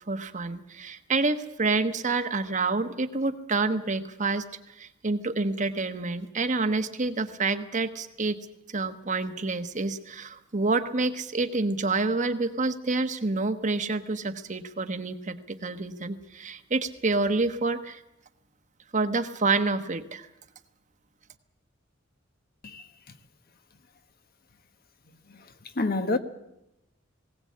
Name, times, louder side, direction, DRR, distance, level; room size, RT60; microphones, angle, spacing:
voice 1, 0.1-8.4 8.7-18.0 18.9-20.3, right 3 dB, 40° right, 1.2 m, -28 dB
voice 2, 25.8-26.2, left 2 dB, 50° left, 1.3 m, -26 dB
20.0 x 17.5 x 8.6 m
head